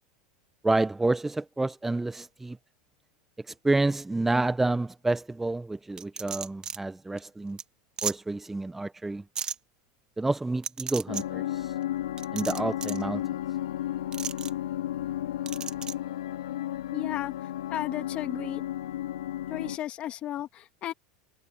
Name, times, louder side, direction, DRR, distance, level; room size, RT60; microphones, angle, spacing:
voice 1, 0.6-2.6 3.5-7.6 8.0-9.2 10.2-11.7 12.3-13.3, right 2 dB, 10° right, 0.6 m, -29 dB
sound 1, 6.0-6.8 7.2-7.3 7.6-7.7 8.0-8.1 9.3-9.5 10.6-11.2 12.2-13.0 14.1-14.5 15.4-15.9, right 7 dB, 30° right, 1.8 m, -34 dB
sound 2, 11.1-19.8, left 12 dB, 90° left, 1.9 m, -33 dB
voice 2, 16.9-17.3 17.7-18.6 19.5-20.9, left 12 dB, 45° left, 2.6 m, -33 dB
hypercardioid pair, 105°, 3 cm